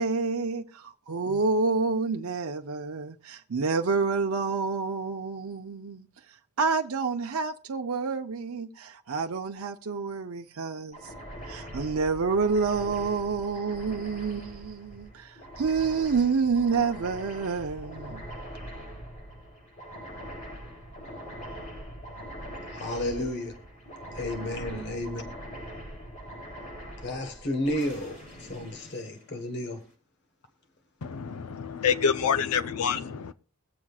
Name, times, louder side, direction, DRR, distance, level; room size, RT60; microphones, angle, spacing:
voice 1, 0.0-6.1 6.6-11.1 11.4-18.3, right 4 dB, 70° right, 0.6 m, -28 dB
sound 1, 10.9-29.8, equal, 35° left, 3.1 m, -43 dB
voice 2, 22.7-23.6 24.1-25.2 27.0-29.8, left 1 dB, 50° left, 1.3 m, -32 dB
voice 3, 31.0-33.3, left 6 dB, 80° left, 0.5 m, -27 dB
22.0 x 7.4 x 2.3 m
head